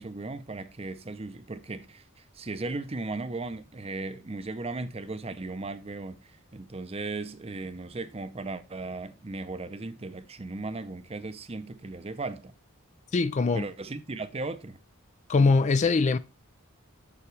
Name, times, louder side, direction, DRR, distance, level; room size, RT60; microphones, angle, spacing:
voice 1, 0.0-12.5 13.5-14.8, right 3 dB, 30° right, 0.6 m, -37 dB
voice 2, 13.1-13.7 15.3-16.2, left 4 dB, 35° left, 0.4 m, -22 dB
7.0 x 6.9 x 3.2 m
head